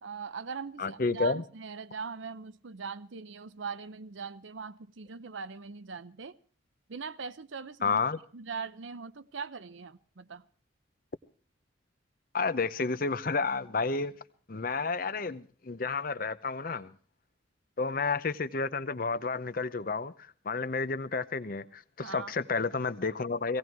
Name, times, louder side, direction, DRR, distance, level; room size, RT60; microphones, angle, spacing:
voice 1, 0.0-6.4 6.9-8.0 8.3-10.4 22.0-22.3, right 5 dB, 75° right, 0.7 m, -41 dB
voice 2, 0.8-1.4 7.8-8.2 12.3-14.1 14.5-16.9 17.8-23.6, left 4 dB, 45° left, 0.7 m, -31 dB
18.0 x 17.5 x 4.6 m
head